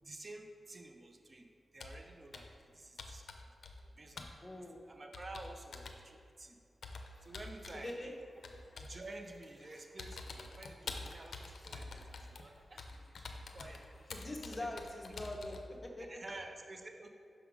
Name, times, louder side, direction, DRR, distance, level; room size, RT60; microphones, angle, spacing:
voice 1, 0.0-1.5 1.7-3.3 4.0-4.3 4.9-6.6 7.2-8.2 8.8-12.9 13.2-13.3 13.5-13.8 14.5-14.7 16.0-17.1, right 2 dB, 40° right, 5 dB, 0.6 m, -51 dB
Computer keyboard, 1.8-2.1 2.3-2.6 3.0-3.9 4.2-4.4 5.1-6.0 6.8-7.8 8.4-9.0 9.4-9.6 10.0-15.7, left 3 dB, 80° left, 0.4 m, -47 dB
voice 2, 4.4-4.8 7.8-8.1 14.1-16.2, left 1 dB, 30° left, 1 dB, 0.9 m, -43 dB
sound 1, 7.1-14.5, left 1 dB, 45° left, 1.5 m, -67 dB
5.9 x 3.6 x 4.8 m, 2.3 s
cardioid pair, 55°, 0 cm